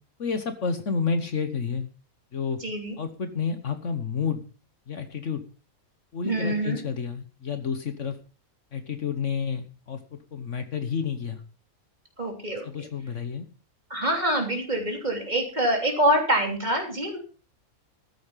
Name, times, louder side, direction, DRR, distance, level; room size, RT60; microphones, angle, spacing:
voice 1, 0.2-1.9 2.3-2.6 3.0-4.4 4.9-5.4 6.1-8.2 8.7-10.0 10.3-11.4 12.6-13.5, left 6 dB, 60° left, 9 dB, 1.5 m, -30 dB
voice 2, 2.6-2.9 6.2-6.8 12.2-12.9 13.9-17.3, right 1 dB, 30° right, 2 dB, 3.4 m, -25 dB
14.0 x 8.5 x 5.7 m, 0.37 s
omnidirectional pair, 1.5 m